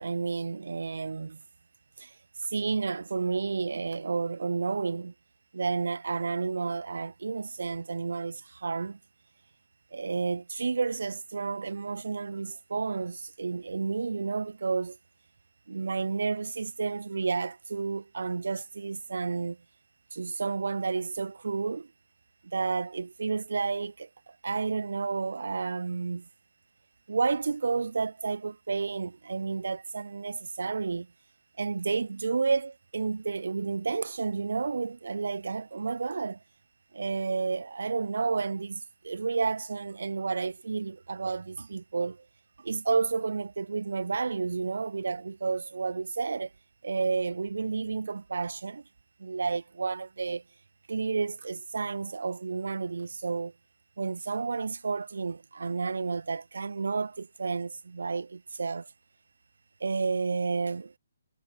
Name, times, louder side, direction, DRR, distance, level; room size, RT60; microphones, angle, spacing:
voice 1, 0.0-1.4 2.0-2.1 2.4-5.1 5.5-9.0 9.9-15.0 15.7-19.6 20.1-21.9 22.4-26.3 27.1-31.1 31.6-36.4 36.9-42.2 42.6-46.5 46.8-48.8 49.2-50.4 50.9-53.5 54.0-58.9 59.8-60.9, right 4 dB, 90° right, 3.0 m, -31 dB
hypercardioid pair, 170°, 0 cm